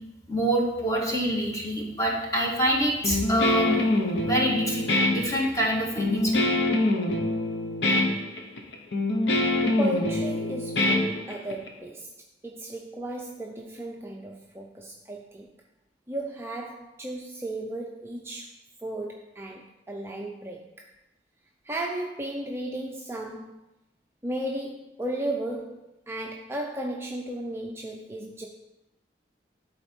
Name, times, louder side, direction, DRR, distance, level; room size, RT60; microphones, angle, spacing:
voice 1, 0.3-3.8 4.2-4.8 5.1-6.4, equal, 20° left, -2 dB, 1.6 m, -26 dB
Guitar, 3.0-11.7, left 2 dB, 85° left, 1.0 m, -25 dB
voice 2, 9.8-12.1 12.4-15.5 16.1-18.5 18.8-20.9 21.6-23.6 24.2-28.5, right 1 dB, 15° right, 0 dB, 0.5 m, -34 dB
11.0 x 4.2 x 4.4 m, 0.94 s
head